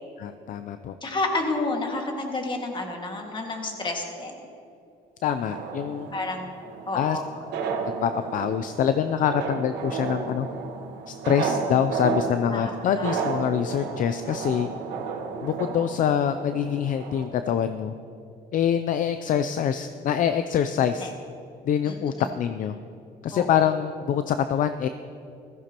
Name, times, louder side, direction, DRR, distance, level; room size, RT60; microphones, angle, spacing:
voice 1, 0.2-0.9 5.2-6.1 6.9-7.2 8.0-10.5 11.1-14.7 15.4-17.9 18.5-21.1 21.6-22.8 23.2-24.9, left 9 dB, 50° left, 10 dB, 0.4 m, -25 dB
voice 2, 1.0-4.4 6.1-6.5 6.9-7.4 12.5-12.7 13.0-13.2 21.0-21.1 21.8-22.3 23.3-23.7, left 2 dB, 30° left, 2 dB, 1.9 m, -30 dB
sound 1, 5.5-17.2, right 5 dB, 85° right, 1.3 m, -32 dB
16.0 x 14.5 x 2.9 m, 2.6 s
cardioid pair, 110°, 17 cm